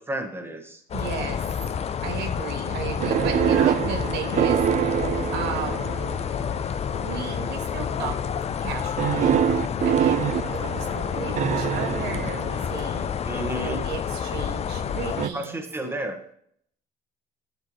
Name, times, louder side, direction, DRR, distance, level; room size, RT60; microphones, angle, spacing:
voice 1, 0.0-0.8 3.5-3.8 13.3-13.8 15.3-16.2, right 1 dB, 15° right, 4 dB, 1.6 m, -32 dB
Near city, 0.9-15.3, left 7 dB, 40° left, 0.6 m, -29 dB
voice 2, 0.9-1.4 2.0-4.6 5.3-5.8 6.9-8.2 8.6-9.4 9.8-13.1 13.5-15.6, right 8 dB, 85° right, 6 dB, 1.2 m, -35 dB
sound 1, 3.0-6.4 7.1-7.6 9.0-13.1 15.2-15.3, right 10 dB, 45° right, 0.5 m, -25 dB
Drum, 4.3-6.8, left 4 dB, 80° left, 1.7 m, -41 dB
11.0 x 6.5 x 3.2 m, 0.66 s
cardioid pair, 110°, 17 cm